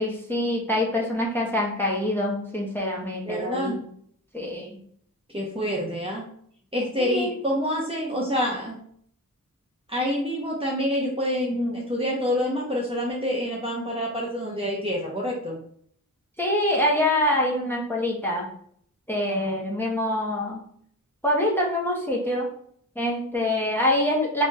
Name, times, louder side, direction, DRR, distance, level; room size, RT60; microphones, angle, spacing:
voice 1, 0.0-3.8 4.3-4.7 7.0-7.3 16.4-18.5 19.1-20.6 21.2-22.5 23.0-24.5, left 1 dB, 5° left, -3 dB, 1.0 m, -25 dB
voice 2, 3.3-3.8 5.3-6.3 6.7-8.8 9.9-15.6 19.3-19.5, equal, 15° right, -4 dB, 0.9 m, -27 dB
4.1 x 2.9 x 2.3 m, 0.63 s
wide cardioid pair, 45°, 34 cm